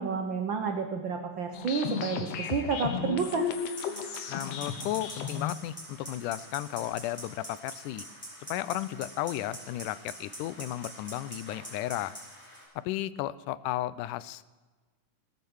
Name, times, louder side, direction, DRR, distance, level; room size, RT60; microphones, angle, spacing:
voice 1, 0.0-3.5, right 5 dB, 80° right, 4 dB, 1.0 m, -30 dB
sound 1, 1.5-5.5, left 7 dB, 65° left, 2.1 m, -34 dB
sound 2, 3.7-12.6, equal, 5° left, 4.3 m, -45 dB
voice 2, 4.3-8.1 8.5-12.2 12.8-14.4, left 14 dB, 90° left, 17 dB, 2.1 m, -34 dB
17.5 x 8.4 x 7.1 m, 1.3 s
omnidirectional pair, 3.6 m